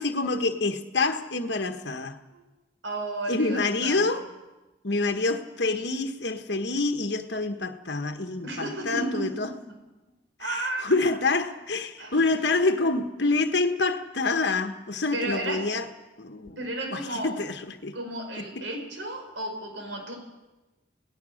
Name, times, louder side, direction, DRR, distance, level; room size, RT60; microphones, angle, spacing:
voice 1, 0.0-2.2 3.3-4.3 4.8-9.5 10.4-15.9 16.2-16.6 16.9-18.0 18.4-18.7, left 3 dB, 60° left, 1.4 m, -27 dB
voice 2, 2.8-4.1 8.4-9.3 10.4-10.9 12.0-12.3 15.1-15.6 16.5-17.4 17.9-20.1, right 2 dB, 80° right, 5.2 m, -33 dB
28.0 x 18.0 x 6.5 m
head